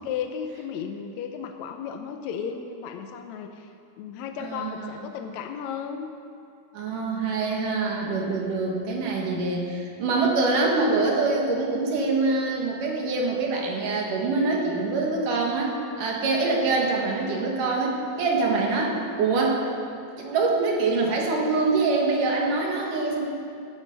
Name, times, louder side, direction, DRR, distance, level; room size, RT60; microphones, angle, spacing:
voice 1, 0.0-6.1, left 7 dB, 75° left, 5 dB, 1.6 m, -34 dB
voice 2, 4.4-5.0 6.7-19.6 20.2-23.3, right 3 dB, 70° right, -1 dB, 3.2 m, -25 dB
14.5 x 12.0 x 5.4 m, 2.5 s
omnidirectional pair, 4.0 m